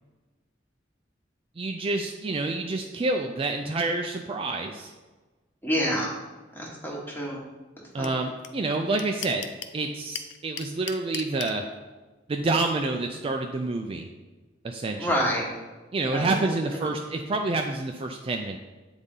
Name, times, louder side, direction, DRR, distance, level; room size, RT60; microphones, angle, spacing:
voice 1, 1.6-4.9 7.9-9.5 9.7-11.6 12.3-14.1 14.6-15.2 15.9-18.6, right 2 dB, 30° right, 3 dB, 0.3 m, -28 dB
voice 2, 5.6-6.1 6.6-7.4 8.0-8.1 15.0-15.5 16.1-16.5 16.8-16.9, equal, 10° left, -3 dB, 1.2 m, -28 dB
sound 1, 8.0-8.1 8.4-8.5 8.7-9.8 10.1-11.5, left 9 dB, 65° left, 0.5 m, -35 dB
8.1 x 4.0 x 3.7 m, 1.2 s
head